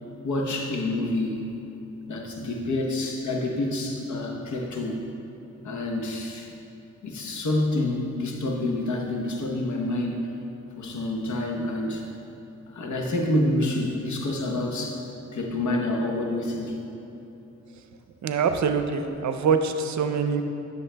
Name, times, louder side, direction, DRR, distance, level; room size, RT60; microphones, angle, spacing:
voice 1, 0.2-1.6 2.1-5.1 5.6-6.5 7.0-10.2 10.8-12.1 12.7-15.0 15.3-16.8, left 1 dB, 80° left, 1 dB, 0.9 m, -28 dB
voice 2, 18.2-20.4, right 5 dB, 75° right, 8 dB, 0.5 m, -24 dB
11.0 x 6.5 x 2.2 m, 2.9 s
cardioid pair, 65°, 29 cm